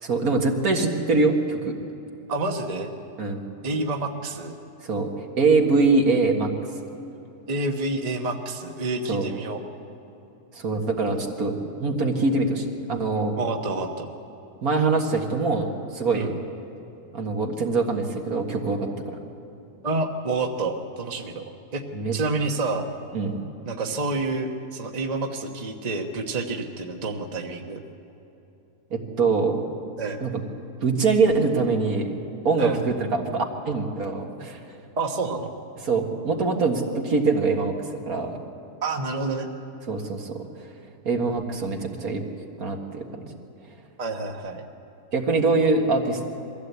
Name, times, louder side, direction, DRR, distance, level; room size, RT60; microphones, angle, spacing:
voice 1, 0.0-1.7 3.2-3.4 4.8-5.1 5.4-6.5 9.1-9.2 10.6-13.3 14.6-16.3 17.1-19.2 21.9-22.2 23.1-23.4 28.9-29.6 30.2-30.4 30.8-32.1 32.4-34.6 35.8-37.7 38.1-38.4 39.9-40.4 41.1-42.2 42.6-43.0 45.1-46.2, right 3 dB, 65° right, 2 dB, 2.2 m, -23 dB
voice 2, 2.3-2.9 3.6-4.5 7.5-9.6 13.4-14.1 16.1-16.4 19.8-21.4 21.7-21.8 22.1-22.9 23.7-27.8 30.0-30.3 32.6-32.8 35.0-35.5 38.8-39.5 44.0-44.6, right 3 dB, 30° right, 3 dB, 1.2 m, -28 dB
22.5 x 15.5 x 8.2 m, 2.9 s
omnidirectional pair, 1.7 m